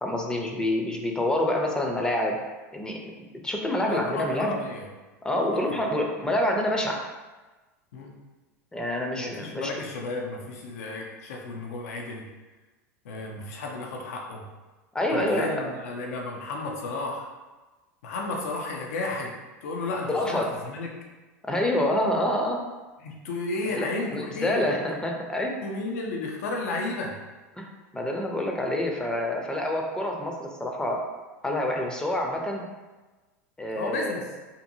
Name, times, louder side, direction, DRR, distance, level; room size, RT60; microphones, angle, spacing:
voice 1, 0.0-2.4 2.7-3.1 3.4-4.6 5.2-7.0 8.7-9.7 14.9-15.7 20.1-20.5 21.4-22.6 23.7-25.5 27.6-27.7 27.9-31.0 31.4-32.6 33.6-34.1, left 1 dB, 10° left, 1 dB, 0.5 m, -27 dB
voice 2, 3.9-4.9 5.4-5.6 7.9-8.1 9.1-12.2 13.0-14.4 15.1-17.3 18.0-19.3 19.6-20.9 23.0-24.7 25.6-27.1 33.7-34.2, left 3 dB, 75° left, 0 dB, 0.5 m, -33 dB
2.7 x 2.6 x 2.6 m, 1.2 s
hypercardioid pair, 95°, 8 cm